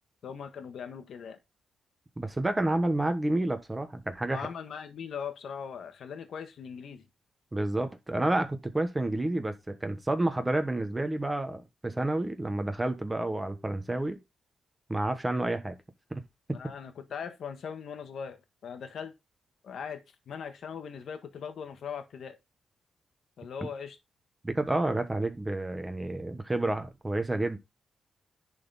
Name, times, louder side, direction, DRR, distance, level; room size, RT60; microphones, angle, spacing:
voice 1, 0.2-1.4 4.3-7.1 16.5-19.1 19.6-22.4 23.4-24.0, left 7 dB, 70° left, 1.3 m, -40 dB
voice 2, 2.2-4.5 7.5-14.2 14.9-15.8 16.1-16.2 24.4-27.6, right 2 dB, 15° right, 1.2 m, -29 dB
10.5 x 4.2 x 4.0 m
cardioid pair, 110°, 0 cm